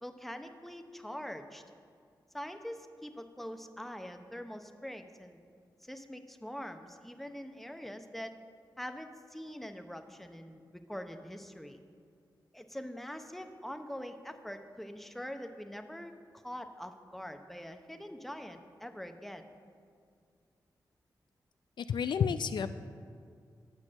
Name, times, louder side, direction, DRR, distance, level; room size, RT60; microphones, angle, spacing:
voice 1, 0.0-1.6 2.3-5.4 5.8-8.4 8.8-11.8 12.5-16.1 16.4-19.4, equal, ahead, 7 dB, 0.8 m, -44 dB
voice 2, 21.8-22.8, left 7 dB, 70° left, 11 dB, 0.4 m, -31 dB
10.0 x 6.0 x 7.4 m, 2.2 s
cardioid pair, 65°, 8 cm